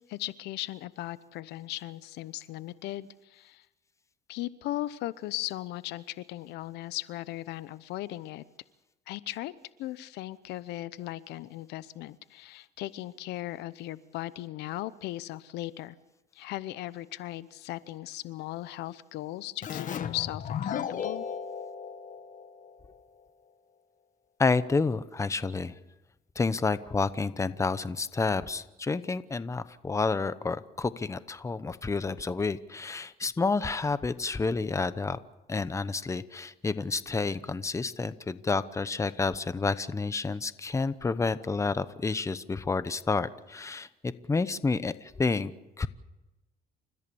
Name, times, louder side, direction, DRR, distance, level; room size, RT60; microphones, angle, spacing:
voice 1, 0.0-3.7 4.3-8.4 9.1-9.5 9.8-16.0 16.3-21.3, left 15 dB, 85° left, 17 dB, 0.8 m, -37 dB
Keyboard (musical), 19.6-23.0, left 8 dB, 50° left, 1.3 m, -35 dB
voice 2, 24.4-25.8 26.3-35.2 35.5-45.5 45.8-45.9, left 4 dB, 15° left, 15 dB, 0.9 m, -29 dB
29.5 x 14.5 x 7.0 m, 1.0 s
cardioid pair, 110°, 17 cm